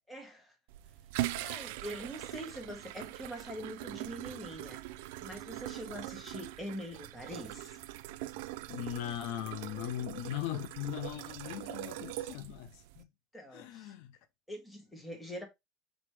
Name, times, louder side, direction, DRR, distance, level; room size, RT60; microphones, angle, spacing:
voice 1, 0.1-0.5 1.3-4.8 5.2-7.8 13.3-13.9 14.5-15.5, equal, 5° left, 1.3 m, -44 dB
sound 1, 0.7-13.0, right 16 dB, 75° right, 0.3 m, -42 dB
voice 2, 8.7-13.1 13.5-14.2, left 12 dB, 65° left, 0.5 m, -39 dB
4.0 x 3.5 x 3.2 m
supercardioid pair, 140°, 0 cm